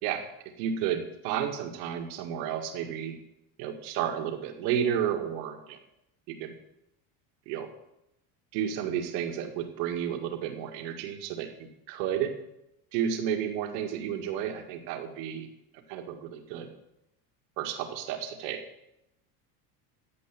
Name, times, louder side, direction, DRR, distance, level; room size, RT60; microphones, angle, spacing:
voice 1, 0.6-3.2 3.6-5.8 6.3-6.6 7.5-7.7 8.5-12.3 12.9-15.5 15.9-16.7 17.6-18.6, right 9 dB, 80° right, 5 dB, 2.0 m, -32 dB
15.5 x 5.5 x 8.4 m, 0.87 s
supercardioid pair, 90°, 49 cm